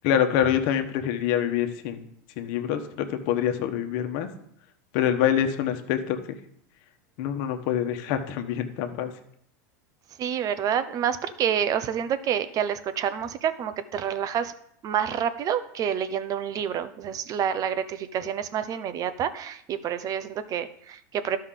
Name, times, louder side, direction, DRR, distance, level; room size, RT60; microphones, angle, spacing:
voice 1, 0.0-2.0 2.4-4.3 4.9-6.2 7.2-9.1, left 9 dB, 60° left, 6 dB, 1.2 m, -25 dB
voice 2, 10.2-14.5 14.8-21.4, right 8 dB, 40° right, 12 dB, 0.8 m, -28 dB
12.5 x 5.5 x 3.8 m, 0.70 s
hypercardioid pair, 110°, 10 cm